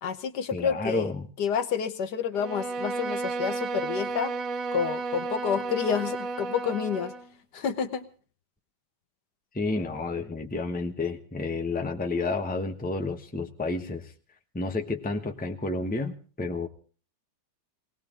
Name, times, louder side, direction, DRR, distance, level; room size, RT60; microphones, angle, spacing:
voice 1, 0.0-1.1 1.4-4.3 4.7-7.1 7.5-8.1, left 7 dB, 65° left, 10 dB, 1.5 m, -29 dB
voice 2, 0.5-1.3 9.5-14.1 14.5-16.7, left 3 dB, 5° left, 4 dB, 0.9 m, -30 dB
Bowed string instrument, 2.3-7.3, right 3 dB, 50° right, 1.4 m, -33 dB
20.5 x 18.5 x 3.8 m, 0.39 s
omnidirectional pair, 2.0 m